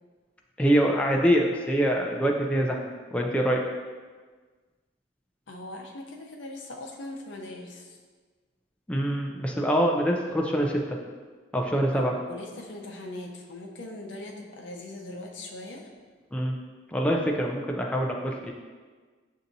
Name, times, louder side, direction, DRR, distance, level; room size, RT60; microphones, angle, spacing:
voice 1, 0.6-2.8 3.1-3.6 8.9-11.0 11.5-12.1 16.3-16.5 16.9-18.5, equal, 5° left, 0 dB, 0.3 m, -24 dB
voice 2, 5.5-8.0 11.9-15.9, left 1 dB, 85° left, 1 dB, 0.6 m, -40 dB
7.0 x 2.7 x 2.6 m, 1.4 s
head